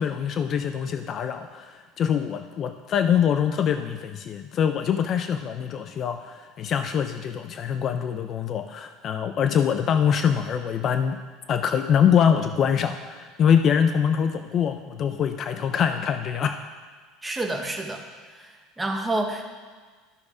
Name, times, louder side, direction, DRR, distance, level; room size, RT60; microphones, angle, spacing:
voice 1, 0.0-11.2 11.5-16.6, left 8 dB, 35° left, 8 dB, 0.4 m, -24 dB
voice 2, 17.2-18.0 18.4-19.4, right 2 dB, 10° right, 3 dB, 1.0 m, -29 dB
12.0 x 6.4 x 4.8 m, 1.5 s
cardioid pair, 145°, 0 cm